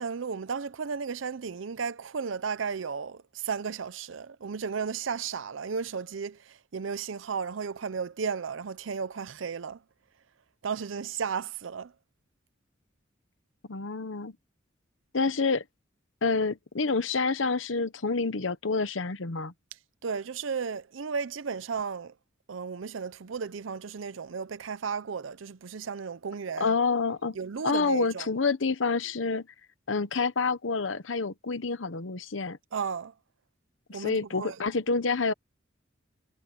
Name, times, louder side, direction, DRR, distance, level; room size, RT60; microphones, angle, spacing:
voice 1, 0.0-9.8 10.6-11.9 20.0-22.1 22.5-26.7 27.3-28.3 32.7-33.1 33.9-34.6, right 6 dB, 85° right, 0.6 m, -34 dB
voice 2, 13.7-14.3 15.1-15.6 16.2-19.5 26.6-27.4 27.6-29.5 29.9-32.6 33.9-35.3, left 4 dB, 75° left, 1.0 m, -28 dB
head